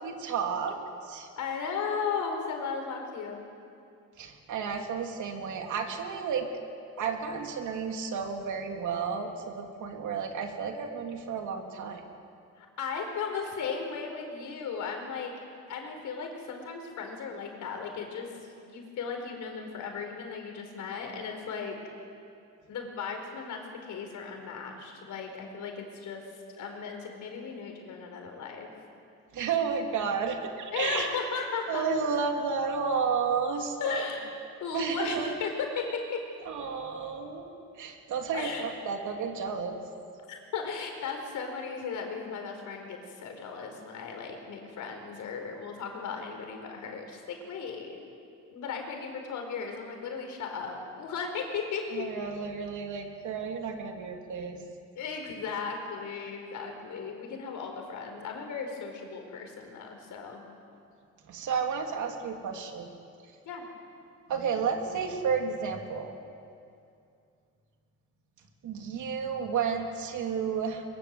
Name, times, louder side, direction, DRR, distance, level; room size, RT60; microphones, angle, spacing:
voice 1, 0.0-1.3 4.2-6.5 7.0-12.0 29.3-31.1 31.7-34.1 34.7-35.3 36.5-37.5 37.8-39.8 51.9-54.6 61.3-62.9 64.3-66.2 68.6-70.8, right 6 dB, 75° right, 3 dB, 3.0 m, -32 dB
voice 2, 1.4-3.4 12.6-15.3 15.7-21.8 22.7-26.2 26.6-28.7 30.7-31.9 33.8-34.2 34.6-35.5 35.7-36.2 38.3-38.6 40.3-48.0 48.5-52.1 54.9-60.4 63.4-63.6, left 5 dB, 75° left, 3 dB, 4.9 m, -36 dB
23.0 x 22.0 x 8.0 m, 2.5 s
cardioid pair, 90°, 30 cm